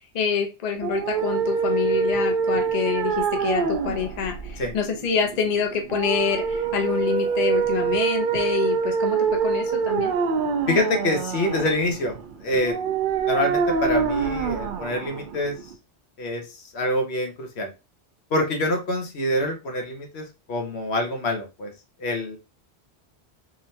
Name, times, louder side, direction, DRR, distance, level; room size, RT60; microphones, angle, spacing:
voice 1, 0.1-10.1, left 6 dB, 45° left, 3 dB, 0.7 m, -26 dB
sound 1, 0.8-15.7, right 6 dB, 55° right, 0.7 m, -25 dB
voice 2, 10.7-12.1 12.4-12.7 13.3-15.5 16.2-16.4 16.7-17.7 18.3-21.7 22.0-22.4, left 1 dB, 75° left, 3 dB, 1.3 m, -25 dB
3.7 x 3.3 x 2.7 m, 0.26 s
omnidirectional pair, 1.1 m